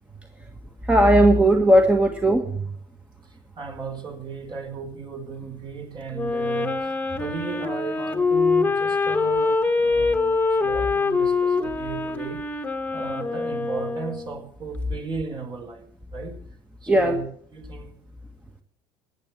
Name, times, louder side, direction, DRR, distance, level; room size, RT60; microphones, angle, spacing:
voice 1, 0.9-2.6 16.9-17.2, right 1 dB, 10° right, 4 dB, 1.7 m, -17 dB
voice 2, 3.6-12.4 12.9-16.3 16.8-17.9, right 4 dB, 40° right, 4 dB, 4.6 m, -35 dB
Wind instrument woodwind instrument, 6.1-14.4, left 4 dB, 10° left, 1.6 m, -24 dB
15.5 x 9.2 x 7.4 m, 0.63 s
supercardioid pair, 90°, 12 cm